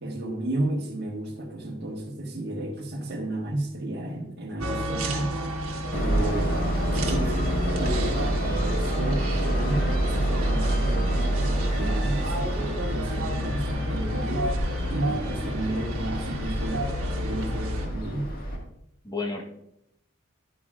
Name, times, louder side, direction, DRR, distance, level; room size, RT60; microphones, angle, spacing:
voice 1, 0.0-6.6 6.8-14.5 14.9-18.3, right 1 dB, 50° right, 1.6 m, -32 dB
sound 1, 4.6-17.9, equal, 85° right, 1.4 m, -31 dB
Train, 5.9-18.6, right 1 dB, 45° left, 1.9 m, -28 dB
voice 2, 7.2-7.5 15.7-15.8 19.0-19.4, left 3 dB, 20° left, 1.2 m, -33 dB
10.0 x 9.1 x 2.5 m
head